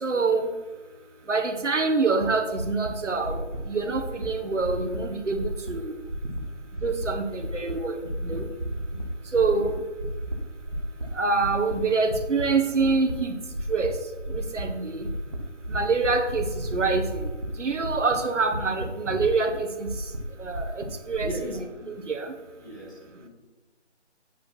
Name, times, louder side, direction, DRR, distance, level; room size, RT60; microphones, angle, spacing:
voice 1, 0.0-0.5 1.3-3.4 3.7-5.9 6.8-8.0 8.2-8.5 9.3-9.8 11.1-13.3 13.7-13.9 14.3-15.1 15.7-17.3 17.6-19.9 20.4-21.3 21.9-22.3, right 4 dB, 85° right, 5 dB, 1.5 m, -26 dB
sound 1, 2.2-2.3 2.6-2.9 3.2-3.6 3.9-4.3 4.6-5.0 5.3-5.7 6.0-6.4 6.7-7.1 7.4-7.7 8.0-9.1 9.3-9.7 10.0-10.4 10.6-11.1 11.4-12.4 12.8-13.1 13.5-13.9 14.2-14.6 14.9-15.4 15.6-17.5 17.8-18.1 18.4-19.5 19.9-21.3, right 1 dB, 30° right, 0.9 m, -33 dB
voice 2, 21.2-22.0 22.6-23.3, equal, 15° left, -5 dB, 1.6 m, -38 dB
8.3 x 7.4 x 4.4 m, 1.2 s
figure-of-eight pair, 175°, 35 cm